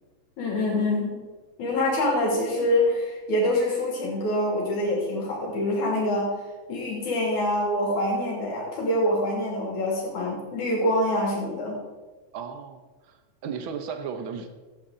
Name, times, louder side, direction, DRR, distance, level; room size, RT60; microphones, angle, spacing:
voice 1, 0.4-1.2 1.6-6.3 6.7-11.8, left 1 dB, 85° left, -3 dB, 4.0 m, -25 dB
voice 2, 12.3-14.5, right 6 dB, 75° right, 6 dB, 1.1 m, -35 dB
14.5 x 8.5 x 3.8 m, 1.3 s
omnidirectional pair, 3.3 m